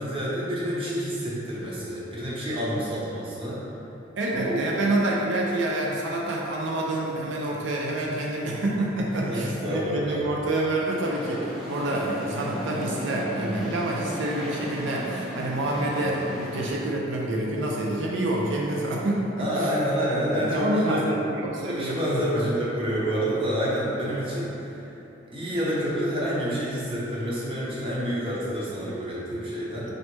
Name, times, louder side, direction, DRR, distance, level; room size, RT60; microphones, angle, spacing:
voice 1, 0.0-3.6 4.3-4.6 9.1-10.2 19.4-21.1 21.6-24.7 25.3-29.9, equal, 30° right, -7 dB, 0.9 m, -28 dB
voice 2, 4.2-19.7 20.3-22.5 29.3-29.5, right 1 dB, 85° right, -2 dB, 0.5 m, -27 dB
sound 1, 10.9-16.7, right 1 dB, 5° right, 0.8 m, -35 dB
4.0 x 3.2 x 3.2 m, 2.9 s
head